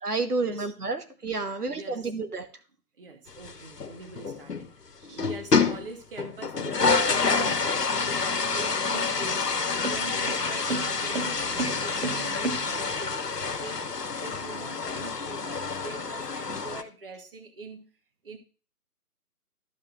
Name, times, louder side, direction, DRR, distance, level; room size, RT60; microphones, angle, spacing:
voice 1, 0.0-2.5, right 3 dB, 75° right, 1.3 m, -30 dB
voice 2, 1.4-2.1 3.0-13.2 13.6-13.9 14.2-17.9 18.2-18.4, right 3 dB, 35° right, 1.3 m, -43 dB
sound 1, 3.3-4.7 5.0-5.9 6.2-16.8, left 4 dB, 85° left, 1.1 m, -28 dB
sound 2, 8.5-13.1, right 3 dB, 55° right, 1.6 m, -35 dB
13.5 x 5.7 x 2.5 m
figure-of-eight pair, 150°, 47 cm